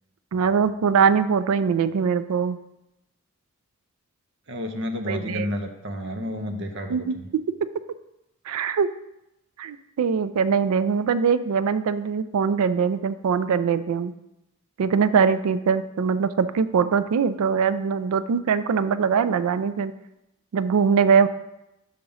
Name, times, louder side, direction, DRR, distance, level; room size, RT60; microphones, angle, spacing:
voice 1, 0.3-2.6 5.1-5.5 6.9-7.2 7.5-7.6 8.5-8.9 9.6-14.1 14.8-19.9 20.5-21.3, right 6 dB, 90° right, 14 dB, 0.4 m, -22 dB
voice 2, 4.5-7.3, left 1 dB, 55° right, 4 dB, 0.8 m, -31 dB
5.8 x 5.4 x 4.9 m, 0.89 s
head